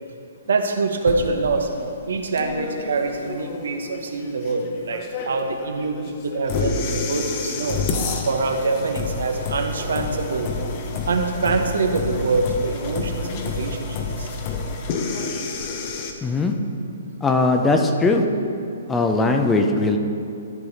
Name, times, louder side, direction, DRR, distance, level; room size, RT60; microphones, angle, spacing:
voice 1, 0.5-1.7 2.1-7.8 8.2-10.5 11.1-14.3, right 3 dB, 75° right, 5 dB, 0.9 m, -24 dB
sound 1, 1.1-16.1, left 4 dB, 40° left, 0.9 m, -29 dB
voice 2, 16.2-16.5 17.2-18.2 18.9-20.0, left 3 dB, 10° left, 4 dB, 0.6 m, -19 dB
13.0 x 4.8 x 4.1 m, 2.6 s
hypercardioid pair, 140°, 0 cm